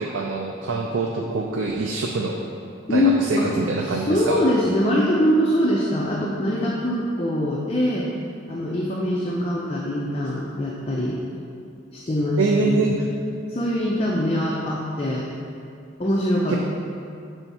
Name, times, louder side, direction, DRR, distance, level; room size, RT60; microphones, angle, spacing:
voice 1, 0.0-2.4 2.9-4.4 12.4-13.1 16.5-16.6, right 3 dB, 85° right, 0 dB, 0.4 m, -24 dB
voice 2, 2.9-3.5 3.9-8.1 8.5-11.2 11.9-12.9 13.5-15.3 16.0-16.6, left 1 dB, 30° left, -4 dB, 0.5 m, -23 dB
7.0 x 3.5 x 4.1 m, 2.5 s
head